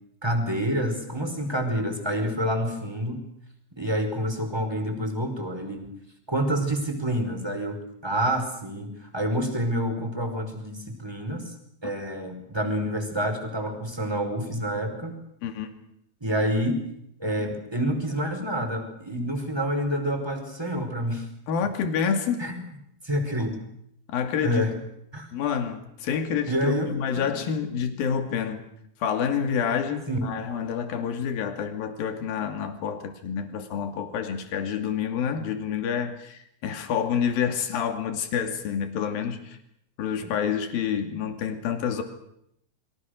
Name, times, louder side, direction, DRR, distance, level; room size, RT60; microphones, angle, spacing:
voice 1, 0.2-3.2 3.8-5.8 6.3-11.5 11.8-15.2 16.2-16.8 17.2-21.3 22.4-22.6 23.0-23.5 24.4-24.7 25.1-25.3 26.5-27.4 30.1-30.2, equal, 5° right, 5 dB, 4.7 m, -28 dB
voice 2, 21.5-22.5 24.1-24.7 25.3-28.6 29.0-39.6 40.0-42.0, left 7 dB, 65° left, 6 dB, 4.2 m, -28 dB
30.0 x 23.5 x 6.6 m, 0.75 s
omnidirectional pair, 4.7 m